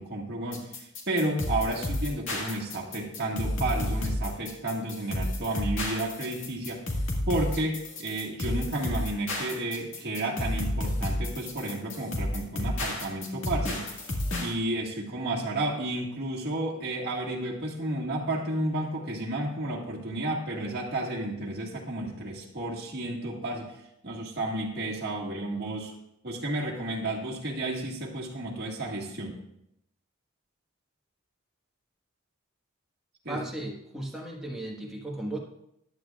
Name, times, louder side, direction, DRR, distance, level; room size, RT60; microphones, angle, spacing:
voice 1, 0.0-6.8 7.3-14.1 14.4-23.7 24.0-25.9 26.2-29.4 33.2-33.4, right 1 dB, 50° right, -3 dB, 1.9 m, -32 dB
sound 1, 0.5-14.5, left 1 dB, 65° left, 2.0 m, -31 dB
voice 2, 33.3-35.4, right 1 dB, ahead, -3 dB, 1.5 m, -35 dB
14.5 x 10.5 x 2.4 m, 0.80 s
head